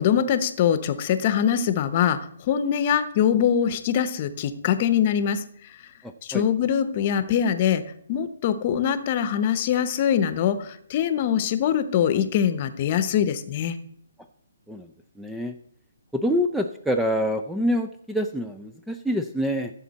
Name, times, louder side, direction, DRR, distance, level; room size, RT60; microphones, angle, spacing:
voice 1, 0.0-5.5 6.2-7.8 8.1-13.8, left 9 dB, 35° left, 12 dB, 0.9 m, -23 dB
voice 2, 6.0-6.4 14.7-14.9 15.2-15.5 16.1-19.7, equal, ahead, 6 dB, 0.4 m, -26 dB
15.5 x 7.2 x 4.2 m, 0.68 s
hypercardioid pair, 160°, 0 cm